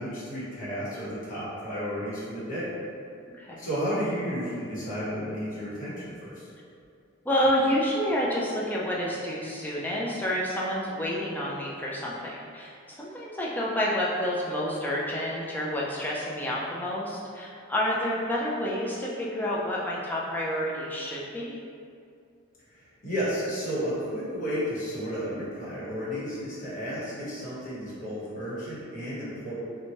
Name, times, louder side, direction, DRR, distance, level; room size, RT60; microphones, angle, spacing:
voice 1, 0.0-2.7 3.6-6.4 22.7-29.5, equal, 40° left, -10 dB, 0.9 m, -32 dB
voice 2, 3.4-3.7 7.2-21.6, equal, 10° left, -5 dB, 0.3 m, -29 dB
2.8 x 2.2 x 2.9 m, 2.4 s
head